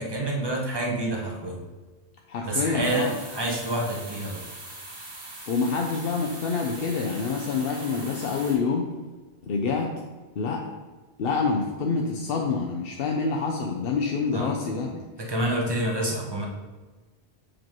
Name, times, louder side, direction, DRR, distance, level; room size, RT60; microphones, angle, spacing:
voice 1, 0.0-1.6 2.4-4.4 14.3-14.9 15.2-16.5, right 1 dB, 25° right, 0 dB, 0.9 m, -28 dB
voice 2, 2.3-3.2 5.5-8.9 9.4-10.0 10.4-10.7 11.2-15.3, left 4 dB, 65° left, 1 dB, 0.8 m, -27 dB
sound 1, 2.8-8.5, right 2 dB, 80° right, 1.7 m, -41 dB
7.1 x 5.1 x 3.0 m, 1.3 s
omnidirectional pair, 1.1 m